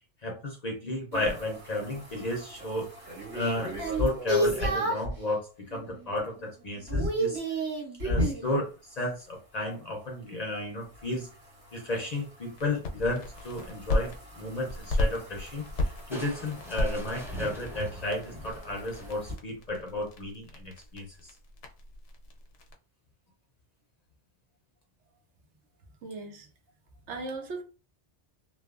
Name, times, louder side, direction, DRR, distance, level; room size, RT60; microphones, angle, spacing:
voice 1, 0.2-2.9 3.3-7.4 8.0-8.7 9.0-11.3 11.7-21.3, left 1 dB, 50° left, 0.5 m, -33 dB
sound 1, 1.1-5.2 5.7-6.1 6.4-8.5 10.9-19.3, right 1 dB, 65° right, 1.6 m, -34 dB
sound 2, 12.6-14.2 14.7-22.7, left 1 dB, 80° left, 0.9 m, -34 dB
Crushing, 16.1-19.5, equal, 5° right, 0.5 m, -42 dB
voice 2, 26.0-26.5 27.1-27.6, right 3 dB, 85° right, 1.0 m, -37 dB
3.1 x 2.0 x 2.3 m
omnidirectional pair, 1.2 m